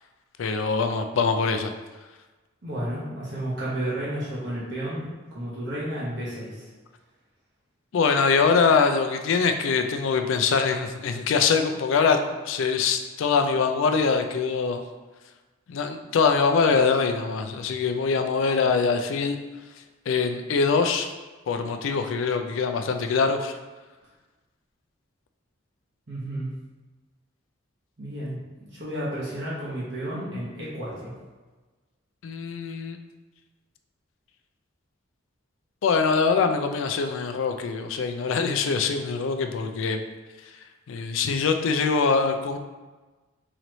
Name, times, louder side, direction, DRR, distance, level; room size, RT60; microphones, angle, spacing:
voice 1, 0.4-1.7 7.9-14.8 15.7-19.4 20.1-21.1 21.5-23.5 32.2-33.0 35.8-40.0 40.9-42.6, left 5 dB, 70° left, 7 dB, 0.3 m, -23 dB
voice 2, 2.6-6.7 26.1-26.5 28.0-28.4 28.7-31.1, right 1 dB, 55° right, -8 dB, 0.9 m, -32 dB
3.9 x 3.0 x 3.0 m, 1.3 s
head